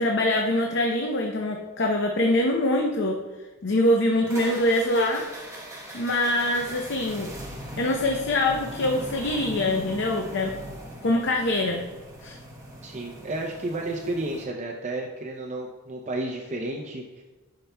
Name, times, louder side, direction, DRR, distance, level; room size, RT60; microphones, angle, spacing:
voice 1, 0.0-3.2 3.6-5.2 5.9-7.3 7.8-10.6 11.0-11.8 12.2-12.4, left 1 dB, 55° left, 1 dB, 0.6 m, -24 dB
sound 1, 4.3-14.4, right 1 dB, 15° right, 1.0 m, -40 dB
voice 2, 12.8-17.2, right 2 dB, 35° right, 0 dB, 0.5 m, -32 dB
11.5 x 5.7 x 2.2 m, 1.2 s
head